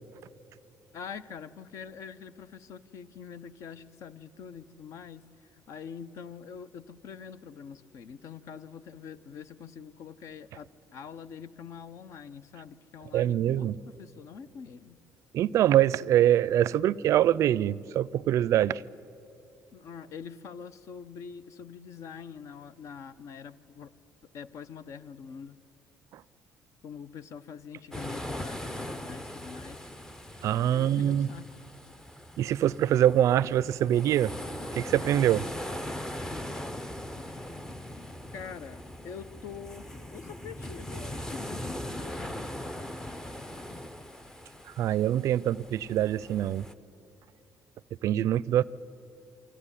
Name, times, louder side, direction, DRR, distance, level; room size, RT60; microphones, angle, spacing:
voice 1, 0.9-5.2 5.5-15.0 19.7-23.9 24.3-25.6 26.8-29.8 30.7-31.6 38.3-42.4, left 6 dB, 60° left, 0.8 m, -44 dB
voice 2, 13.1-13.7 15.3-18.8 26.1-26.2 30.4-31.3 32.4-34.3 34.7-35.5 44.7-46.6 48.0-48.6, right 11 dB, 60° right, 0.4 m, -24 dB
sound 1, 27.9-46.7, left 1 dB, 10° left, 0.6 m, -40 dB
24.0 x 14.5 x 9.9 m
cardioid pair, 125°, 6 cm